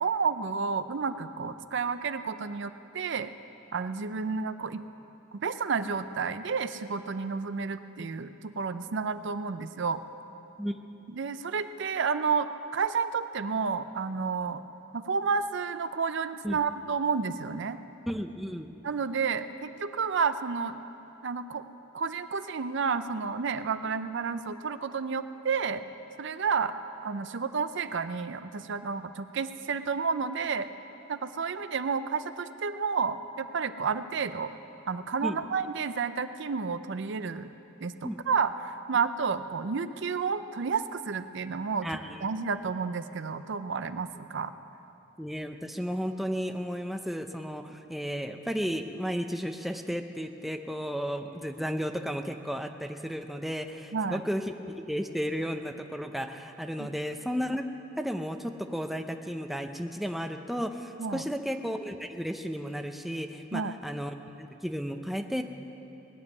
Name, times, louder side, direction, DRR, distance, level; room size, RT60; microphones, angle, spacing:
voice 1, 0.0-3.3 3.7-4.8 5.3-10.0 11.1-14.6 14.9-17.8 18.8-20.8 21.2-21.6 21.9-25.8 26.2-26.7 27.0-30.7 31.1-34.5 34.9-37.5 37.8-41.9 42.2-44.5 53.9-54.2 56.8-56.9 61.0-61.2 63.5-63.7, right 5 dB, 65° right, 11 dB, 0.5 m, -31 dB
voice 2, 18.1-18.7 35.2-35.4 38.0-38.2 41.8-42.2 45.2-57.6 58.0-65.4, equal, ahead, 5 dB, 0.6 m, -33 dB
19.5 x 7.4 x 9.5 m, 2.9 s
head